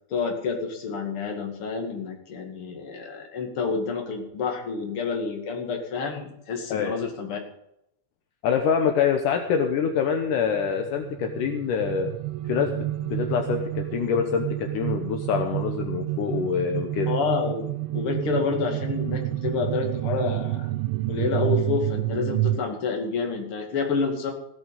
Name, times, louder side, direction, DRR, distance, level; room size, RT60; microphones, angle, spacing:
voice 1, 0.1-7.4 17.1-20.7 21.1-24.3, left 5 dB, 40° left, 2 dB, 2.3 m, -29 dB
voice 2, 8.4-12.1 12.5-17.1, left 7 dB, 75° left, 4 dB, 1.9 m, -25 dB
sound 1, 9.8-22.6, right 15 dB, 90° right, 3.0 m, -29 dB
16.5 x 8.6 x 5.4 m, 0.78 s
omnidirectional pair, 5.2 m